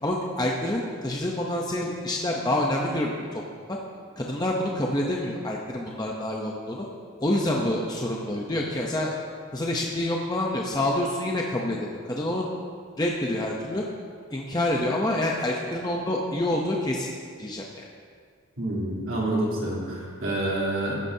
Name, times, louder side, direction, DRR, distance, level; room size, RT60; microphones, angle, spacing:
voice 1, 0.0-3.4 3.7-3.8 4.2-6.9 7.2-9.1 9.5-12.5 13.0-13.8 14.3-17.1 17.4-17.8, left 1 dB, 20° left, -1 dB, 0.7 m, -27 dB
voice 2, 18.6-21.0, right 1 dB, 70° right, -6 dB, 3.2 m, -28 dB
14.5 x 11.5 x 2.8 m, 2.1 s
head